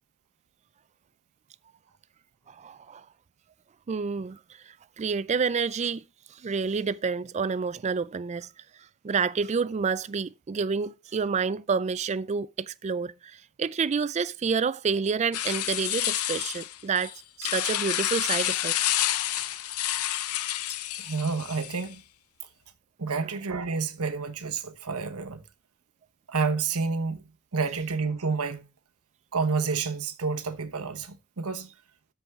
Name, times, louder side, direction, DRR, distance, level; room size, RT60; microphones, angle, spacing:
voice 1, 2.5-3.1 3.9-4.4 5.0-6.0 6.4-8.5 9.0-18.7 23.2-23.3, right 5 dB, 30° right, 0.4 m, -29 dB
sound 1, 15.3-21.9, left 13 dB, 75° left, 0.6 m, -29 dB
voice 2, 21.1-22.0 23.0-25.4 26.3-27.2 27.5-28.7 29.3-31.7, right 4 dB, 85° right, 1.1 m, -29 dB
13.0 x 4.7 x 3.6 m
head